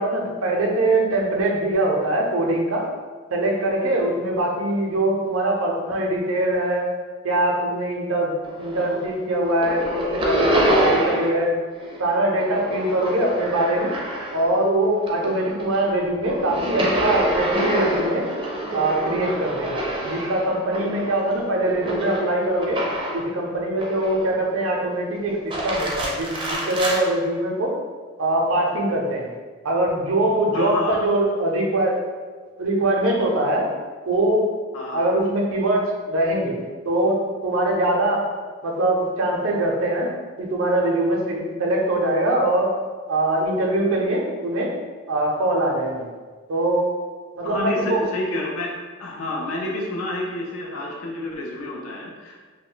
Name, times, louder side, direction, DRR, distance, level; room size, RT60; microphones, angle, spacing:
voice 1, 0.0-2.8 3.3-6.9 7.2-11.5 12.0-13.9 14.3-18.3 18.7-22.8 23.1-27.7 28.2-29.3 29.6-32.0 32.6-33.7 34.1-34.5 34.9-36.6 36.8-38.3 38.6-40.1 40.4-42.7 43.1-44.7 45.1-46.0 46.5-46.9 47.4-48.1, right 1 dB, 85° right, -1 dB, 0.5 m, -22 dB
sound 1, 8.4-9.2 9.4-11.5 11.7-14.6 15.0-23.3 23.8-24.5 25.3-27.0, right 1 dB, 25° right, 0.4 m, -26 dB
voice 2, 30.5-31.0 34.7-35.1 47.4-48.7 49.0-52.5, left 2 dB, 90° left, -1 dB, 0.5 m, -29 dB
2.3 x 2.1 x 3.7 m, 1.4 s
head